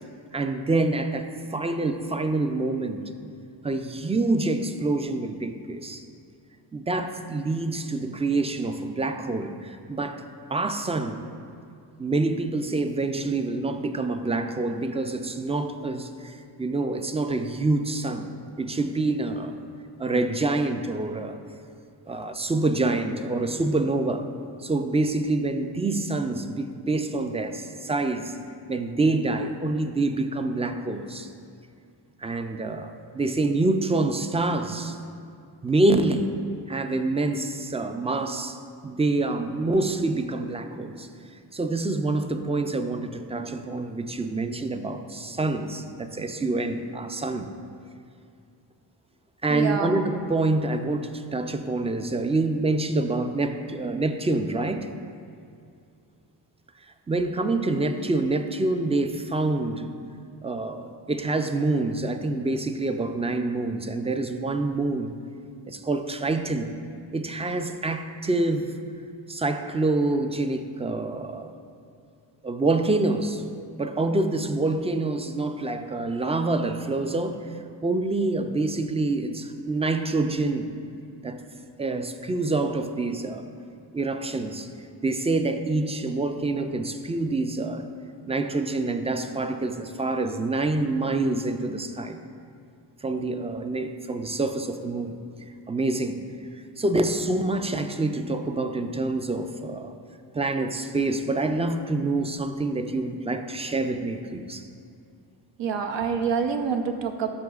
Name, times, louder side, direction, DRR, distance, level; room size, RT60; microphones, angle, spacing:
voice 1, 0.3-3.0 3.6-6.1 6.7-10.2 10.5-11.3 12.0-19.5 20.0-21.4 22.1-24.3 24.6-28.3 28.7-31.3 32.2-35.0 35.6-36.4 36.7-38.6 38.8-41.1 41.5-47.5 49.4-54.9 57.1-59.9 60.4-65.1 65.7-66.7 67.1-68.8 69.3-71.5 72.4-73.4 73.8-77.5 77.8-80.7 81.2-81.4 81.8-83.4 83.9-84.7 85.0-87.9 88.3-92.2 93.0-95.2 95.7-96.2 96.5-99.9 100.3-104.7, right 2 dB, 15° right, 8 dB, 0.4 m, -26 dB
voice 2, 49.5-50.0 105.6-107.3, right 6 dB, 75° right, 5 dB, 0.7 m, -27 dB
12.5 x 6.3 x 2.4 m, 2.4 s
cardioid pair, 80°, 44 cm